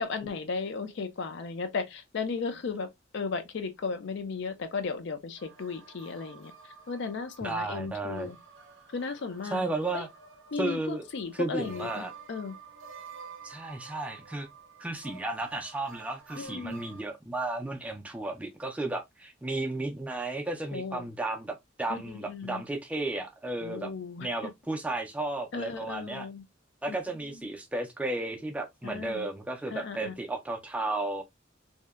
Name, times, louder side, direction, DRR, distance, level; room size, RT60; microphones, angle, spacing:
voice 1, 0.0-2.9 3.1-6.5 6.9-8.4 8.9-9.6 9.9-10.1 10.5-12.5 16.3-16.8 20.7-21.1 21.9-22.6 23.6-24.5 25.5-26.4 26.9-27.5 28.8-29.3 29.7-30.1, left 4 dB, 65° left, 0.4 m, -35 dB
sound 1, 5.4-17.0, right 5 dB, 85° right, 0.5 m, -50 dB
voice 2, 7.4-8.3 9.5-10.1 10.6-11.0 11.3-12.1 13.4-14.5 14.8-23.9 24.2-26.3 26.8-31.2, right 2 dB, 5° right, 0.3 m, -33 dB
2.7 x 2.1 x 2.2 m
head